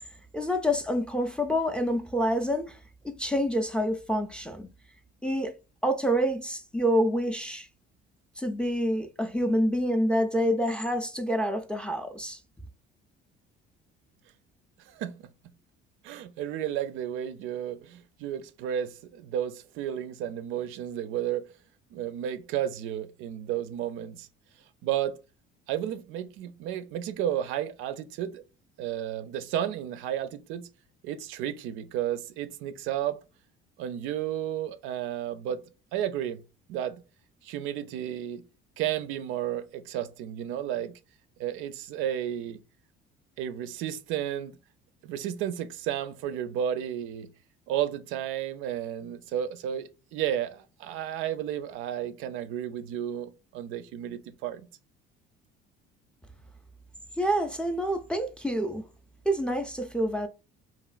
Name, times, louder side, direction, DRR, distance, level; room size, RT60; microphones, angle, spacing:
voice 1, 0.3-2.8 3.0-4.7 5.2-5.5 5.8-7.7 8.4-12.4 57.2-58.8 59.3-60.3, equal, 5° left, 0.4 m, -27 dB
voice 2, 14.9-15.3 16.0-21.5 21.9-24.3 24.8-25.2 25.7-28.4 28.8-30.7 31.0-33.2 33.8-35.6 35.9-36.4 36.7-37.0 37.4-38.4 38.8-40.9 41.4-42.6 43.4-44.6 45.0-47.3 47.7-54.7, right 10 dB, 75° right, 0.4 m, -32 dB
3.0 x 2.6 x 2.4 m
cardioid pair, 105°, 21 cm